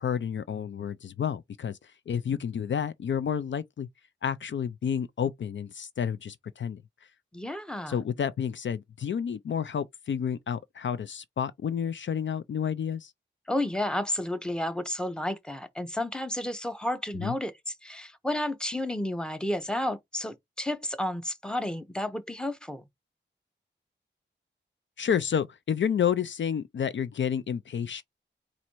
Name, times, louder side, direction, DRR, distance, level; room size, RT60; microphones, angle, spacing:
voice 1, 0.0-1.8 2.1-3.9 4.2-6.8 7.9-13.1 17.2-17.3 25.0-28.0, left 8 dB, 70° left, 0.4 m, -30 dB
voice 2, 7.3-8.0 13.5-22.8, left 1 dB, 5° left, 0.7 m, -31 dB
4.2 x 2.5 x 4.4 m
wide cardioid pair, 90°, 20 cm